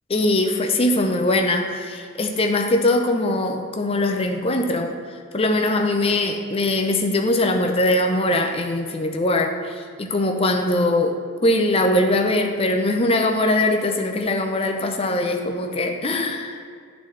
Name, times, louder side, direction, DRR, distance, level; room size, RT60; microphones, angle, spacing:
voice 1, 0.1-4.9 5.3-9.5 10.0-16.6, left 1 dB, 25° left, 4 dB, 0.5 m, -21 dB
11.0 x 4.0 x 3.2 m, 2.1 s
head